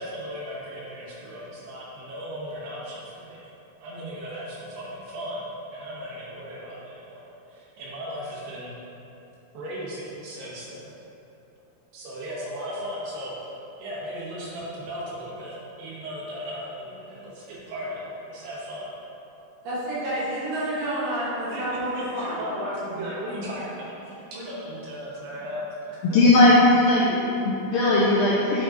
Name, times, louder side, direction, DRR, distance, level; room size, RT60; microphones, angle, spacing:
voice 1, 0.0-3.5 3.8-5.5 5.7-7.2 7.5-8.8 9.5-10.9 11.9-13.5 13.8-18.9 21.5-21.6 21.9-26.2, equal, 80° right, -6 dB, 3.4 m, -36 dB
voice 2, 19.6-22.4, right 1 dB, 65° right, -9 dB, 3.0 m, -29 dB
voice 3, 26.1-28.6, left 2 dB, 80° left, -6 dB, 2.0 m, -18 dB
8.9 x 3.8 x 4.0 m, 3.0 s
omnidirectional pair, 4.7 m